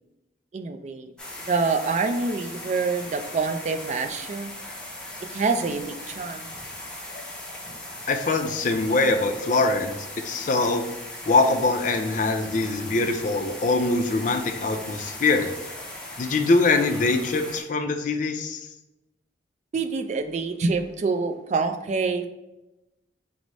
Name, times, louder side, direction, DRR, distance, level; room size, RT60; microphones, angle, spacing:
voice 1, 0.5-1.1 1.4-4.5 5.3-6.5 19.7-22.3, right 4 dB, 40° right, 7 dB, 0.3 m, -26 dB
sound 1, 1.2-17.6, left 1 dB, 5° left, 0.6 m, -38 dB
voice 2, 8.1-10.0 10.2-10.8 11.3-15.5 16.2-18.6, left 3 dB, 45° left, 6 dB, 0.4 m, -23 dB
4.7 x 2.0 x 4.0 m, 0.97 s
head